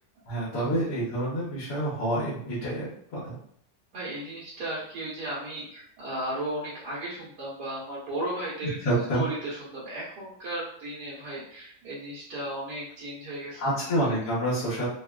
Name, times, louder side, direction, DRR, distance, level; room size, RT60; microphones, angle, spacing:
voice 1, 0.3-3.4 8.8-9.2 13.6-14.9, right 1 dB, 80° left, -9 dB, 1.5 m, -28 dB
voice 2, 3.9-8.8 9.1-13.7 14.0-14.1, right 1 dB, 85° right, -8 dB, 1.4 m, -35 dB
3.6 x 2.2 x 2.3 m, 0.67 s
omnidirectional pair, 1.7 m